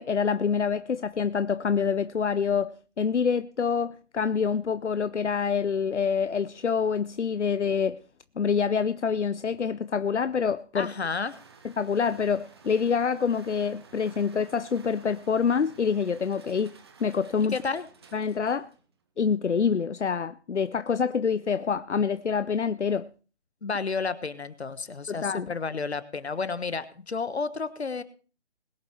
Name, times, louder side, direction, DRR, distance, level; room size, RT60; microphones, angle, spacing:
voice 1, 0.0-8.0 8.4-10.9 11.6-16.7 17.0-17.6 18.1-18.7 19.2-23.1 25.1-25.5, left 6 dB, 85° left, 0.6 m, -26 dB
voice 2, 10.7-11.4 17.5-17.9 23.6-28.0, left 4 dB, 70° left, 1.4 m, -31 dB
sound 1, 11.2-18.9, right 5 dB, 20° right, 1.1 m, -53 dB
21.0 x 7.2 x 4.5 m
figure-of-eight pair, 155°, 34 cm